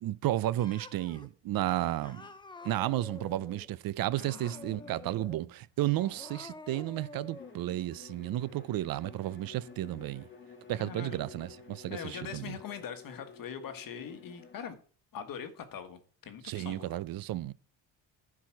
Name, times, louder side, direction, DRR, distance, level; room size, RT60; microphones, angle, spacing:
voice 1, 0.0-2.3 2.6-10.2 10.7-12.5 16.5-17.5, right 14 dB, 55° right, 0.6 m, -33 dB
Cat, 0.6-1.3 2.0-3.7 4.2-5.5 6.0-7.6, left 3 dB, 10° left, 0.6 m, -48 dB
voice 2, 4.2-5.4 5.9-6.2 10.8-11.2 11.9-14.8 15.1-17.0, left 7 dB, 50° left, 1.4 m, -43 dB
Bowed string instrument, 7.3-14.7, left 5 dB, 25° left, 2.2 m, -52 dB
14.5 x 4.8 x 5.9 m
cardioid pair, 155°, 43 cm